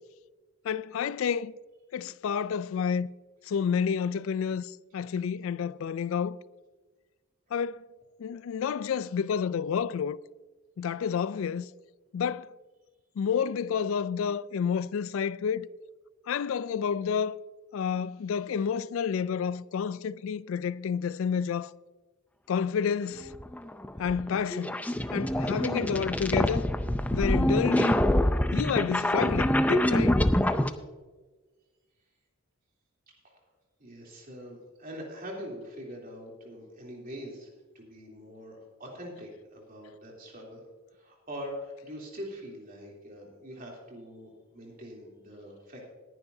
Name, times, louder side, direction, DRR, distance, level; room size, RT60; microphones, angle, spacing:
voice 1, 0.6-1.5 1.9-3.1 3.5-6.4 7.5-7.8 8.2-10.2 10.8-11.7 12.1-12.5 13.2-15.7 16.3-17.4 17.7-21.7 22.5-23.3 24.0-24.8 25.1-26.7 27.1-28.0 28.5-30.2, left 7 dB, 70° left, 0.3 m, -30 dB
sound 1, 23.3-30.7, left 1 dB, 5° left, 0.5 m, -25 dB
voice 2, 33.8-40.6 40.9-45.9, equal, 40° right, 3.2 m, -43 dB
19.5 x 10.5 x 2.7 m
head